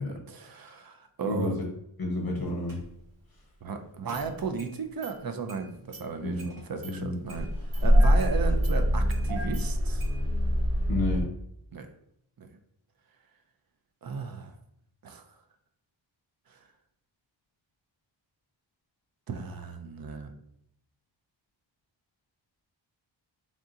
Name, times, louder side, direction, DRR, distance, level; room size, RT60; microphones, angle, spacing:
voice 1, 0.0-1.5 3.6-10.1 11.7-11.9 12.4-12.5 14.0-14.5 15.0-15.2 16.5-16.6 19.3-20.3, right 5 dB, 50° right, 7 dB, 0.5 m, -35 dB
voice 2, 1.2-1.7 2.0-2.8 6.2-6.5 6.8-7.2 10.9-11.3, left 2 dB, 50° left, -1 dB, 0.8 m, -30 dB
Engine starting, 2.7-2.8 4.1-4.7 5.0-5.1 5.5-5.6 5.9-6.0 6.4-6.9 7.3-11.2, equal, 75° right, 1.5 m, -25 dB
3.6 x 2.7 x 3.7 m, 0.73 s
wide cardioid pair, 120°, 48 cm